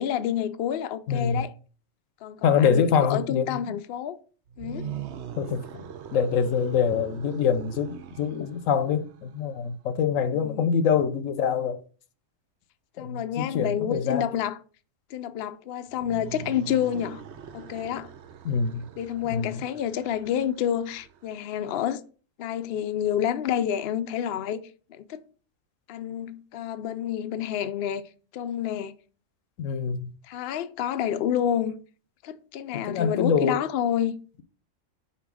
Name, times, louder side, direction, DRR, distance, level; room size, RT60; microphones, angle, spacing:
voice 1, 0.0-1.5 2.2-4.2 4.6-4.9 10.4-10.6 13.0-14.6 15.1-17.2 17.5-18.1 19.0-22.0 22.4-24.6 24.9-25.2 25.9-28.0 28.3-28.9 30.3-31.7 32.2-34.2, left 10 dB, 60° left, 0.7 m, -29 dB
voice 2, 1.1-1.4 2.4-3.8 5.4-11.8 13.0-14.3 18.4-18.9 19.3-19.6 29.6-30.1 32.9-33.6, left 6 dB, 85° left, 1.1 m, -25 dB
sound 1, 4.5-9.6 15.9-21.6, right 8 dB, 65° right, 0.9 m, -42 dB
5.8 x 4.1 x 6.1 m
omnidirectional pair, 1.3 m